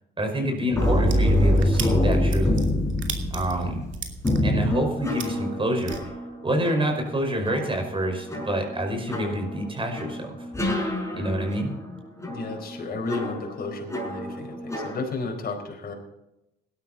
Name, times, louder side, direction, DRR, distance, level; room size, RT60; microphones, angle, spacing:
voice 1, 0.2-2.6 3.3-3.8 4.4-5.9 6.4-10.5 11.1-11.7, equal, 25° right, 3 dB, 5.4 m, -27 dB
sound 1, 0.7-15.0, left 1 dB, 15° left, 6.0 m, -26 dB
sound 2, 1.0-6.0, right 8 dB, 70° right, 2.7 m, -36 dB
voice 2, 12.3-15.9, left 3 dB, 50° left, 1 dB, 4.6 m, -33 dB
17.5 x 12.0 x 4.3 m, 0.89 s
cardioid pair, 90°, 20 cm